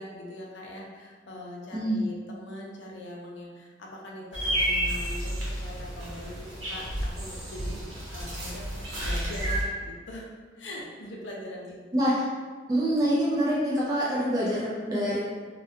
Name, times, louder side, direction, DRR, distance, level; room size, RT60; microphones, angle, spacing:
voice 1, 0.0-7.8 8.1-11.8, left 1 dB, 70° left, -2 dB, 0.5 m, -42 dB
voice 2, 1.7-2.1 11.9-12.2 12.7-15.2, equal, 20° right, -8 dB, 0.3 m, -25 dB
sound 1, 4.3-9.6, equal, 85° right, 0.8 m, -31 dB
2.2 x 2.2 x 2.7 m, 1.5 s
head